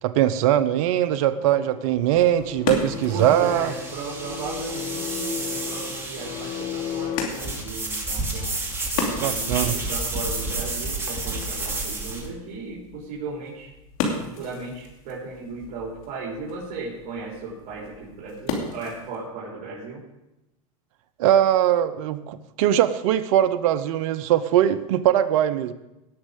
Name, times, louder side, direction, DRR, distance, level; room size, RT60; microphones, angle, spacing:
voice 1, 0.0-3.7 9.2-9.8 21.2-25.7, right 11 dB, 70° right, 10 dB, 0.8 m, -21 dB
sound 1, 1.3-7.3, left 10 dB, 35° left, 0.8 m, -35 dB
sound 2, 1.9-12.3, right 2 dB, 15° right, 2.8 m, -31 dB
sound 3, 2.1-19.2, left 4 dB, 70° left, 2.8 m, -36 dB
voice 2, 3.1-8.6 9.0-13.7 14.2-20.0, right 3 dB, 50° right, -5 dB, 4.0 m, -36 dB
18.5 x 6.6 x 5.1 m, 0.94 s
hypercardioid pair, 110°, 19 cm